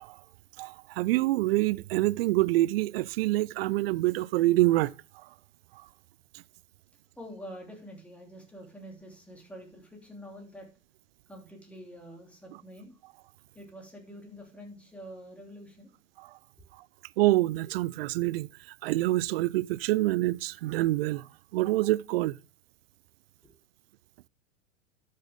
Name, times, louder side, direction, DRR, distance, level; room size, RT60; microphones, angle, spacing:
voice 1, 0.6-4.9 17.2-18.5 18.8-21.3 21.5-22.4, right 17 dB, 50° right, 0.4 m, -26 dB
voice 2, 7.2-10.7 11.3-13.0 13.5-15.9 16.6-16.7 23.4-23.5, equal, 5° left, 3.0 m, -46 dB
12.0 x 6.6 x 3.6 m
hypercardioid pair, 105°, 38 cm